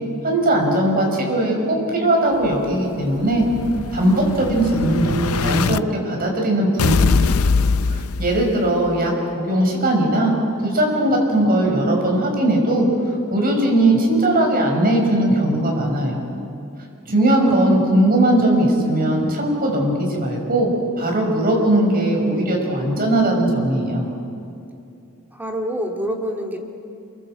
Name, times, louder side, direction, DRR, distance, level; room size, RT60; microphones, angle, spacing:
voice 1, 0.2-3.4 3.9-7.5 7.9-10.3 10.6-12.9 13.3-16.2 17.1-20.7 21.0-24.0, right 1 dB, 45° right, 0 dB, 6.2 m, -19 dB
Explosion, 2.4-5.8 6.8-8.8, left 4 dB, 85° left, 0.5 m, -22 dB
voice 2, 17.2-17.8 25.3-26.6, equal, 10° right, 0 dB, 2.3 m, -27 dB
29.0 x 23.5 x 7.9 m, 2.5 s
head